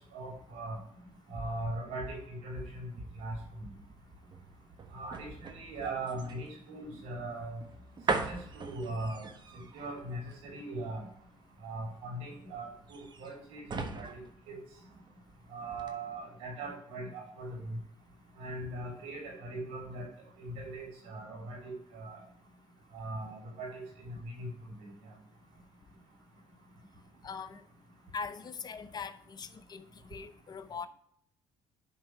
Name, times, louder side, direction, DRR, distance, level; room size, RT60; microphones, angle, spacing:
voice 1, 0.1-0.8 1.3-2.9 3.2-3.3 4.9-7.6 8.1-9.3 9.7-11.0 11.6-14.1 14.5-14.6 15.5-17.8 18.4-20.1 20.4-22.2 22.9-24.5, right 2 dB, 85° right, 0 dB, 3.5 m, -40 dB
sound 1, 1.0-15.3 15.7-15.9, right 4 dB, 40° right, 1.3 m, -41 dB
voice 2, 27.2-27.6 28.1-30.9, left 5 dB, 40° left, 12 dB, 0.7 m, -42 dB
10.5 x 3.7 x 4.7 m, 0.68 s
supercardioid pair, 85°, 11 cm